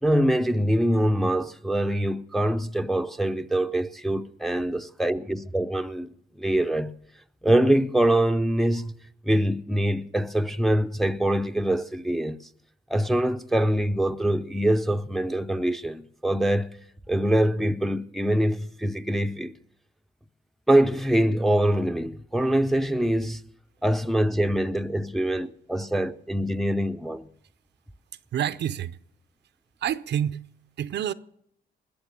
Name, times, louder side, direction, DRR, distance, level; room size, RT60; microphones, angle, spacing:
voice 1, 0.0-7.0 7.4-9.0 9.2-12.5 12.9-16.7 17.1-19.6 20.7-23.4 23.8-27.3, right 1 dB, ahead, 0.6 m, -24 dB
voice 2, 28.3-29.0 29.8-30.4 30.8-31.1, right 10 dB, 60° right, 0.6 m, -27 dB
20.5 x 7.1 x 6.9 m
cardioid pair, 90°, 20 cm